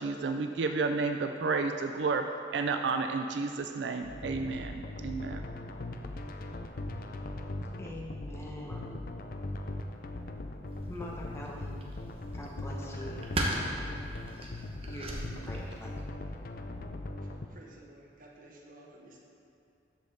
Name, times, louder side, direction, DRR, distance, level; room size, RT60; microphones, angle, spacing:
voice 1, 0.0-2.2 2.5-5.4, right 4 dB, 65° right, 6 dB, 0.4 m, -31 dB
sound 1, 4.0-17.5, left 2 dB, 50° left, 0.5 m, -40 dB
voice 2, 7.7-8.9 9.5-9.8 10.8-11.8 12.1-13.3 13.6-14.0 14.9-16.0, equal, 15° left, -2 dB, 0.9 m, -44 dB
sound 2, 10.7-16.0, right 1 dB, 30° right, 0.9 m, -39 dB
voice 3, 17.2-19.2, right 1 dB, 45° right, -1 dB, 1.2 m, -54 dB
13.0 x 5.2 x 3.9 m, 2.7 s
head